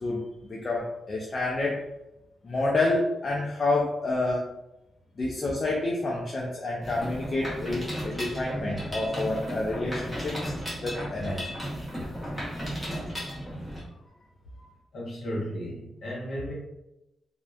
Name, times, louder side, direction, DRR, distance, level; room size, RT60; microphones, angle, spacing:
voice 1, 0.0-1.8 2.4-4.4 5.2-10.5 10.8-11.4 12.4-13.3 14.6-14.7, left 2 dB, 30° left, -3 dB, 0.3 m, -29 dB
Mechanisms, 6.8-13.8, equal, ahead, 0.9 m, -35 dB
voice 2, 14.9-16.5, equal, 55° left, -4 dB, 0.9 m, -34 dB
2.9 x 2.0 x 2.3 m, 0.91 s
wide cardioid pair, 150°, 0 cm